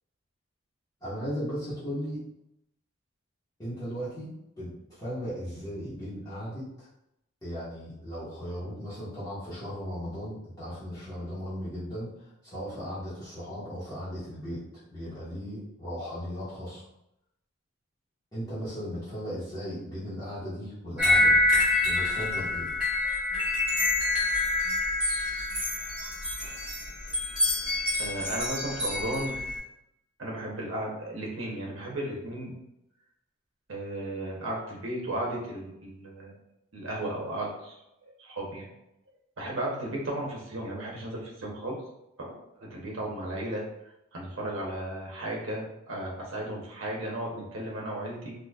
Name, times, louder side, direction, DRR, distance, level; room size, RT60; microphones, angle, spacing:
voice 1, 1.0-2.2 3.6-4.3 4.6-6.9 7.4-12.1 12.4-16.8 18.3-21.3 21.8-22.7, equal, 15° left, -13 dB, 1.2 m, -36 dB
sound 1, 21.0-29.6, left 2 dB, 5° right, 1.4 m, -27 dB
voice 2, 28.0-29.4 30.2-32.5 33.7-36.4 36.7-37.8 38.2-38.6 39.4-41.7 42.2-43.6 44.1-48.3, right 1 dB, 70° right, -3 dB, 0.9 m, -35 dB
4.0 x 2.9 x 2.3 m, 0.84 s
head